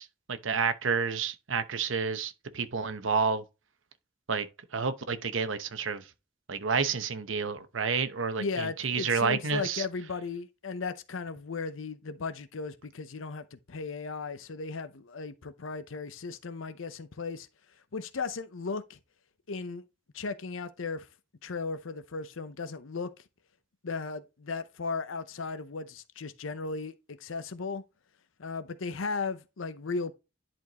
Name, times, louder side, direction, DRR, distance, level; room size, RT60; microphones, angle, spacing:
voice 1, 0.0-3.4 4.3-4.5 4.7-6.0 6.5-9.8, right 5 dB, 80° right, 0.9 m, -30 dB
voice 2, 8.4-17.5 17.9-19.0 19.5-19.8 20.1-21.1 21.4-23.1 23.8-26.9 27.2-27.8 28.4-30.1, left 4 dB, 85° left, 0.7 m, -36 dB
10.5 x 4.5 x 2.9 m
head